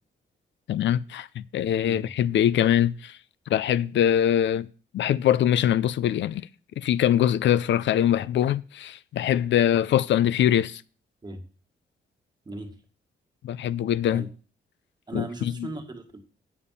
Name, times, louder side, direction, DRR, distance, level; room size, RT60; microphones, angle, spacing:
voice 1, 0.7-3.2 3.5-4.7 4.9-6.5 6.8-10.8 13.4-14.2 15.1-15.7, left 10 dB, 75° left, 0.5 m, -23 dB
voice 2, 15.1-16.2, right 2 dB, 20° right, 1.7 m, -37 dB
8.7 x 7.0 x 5.5 m
wide cardioid pair, 155°, 19 cm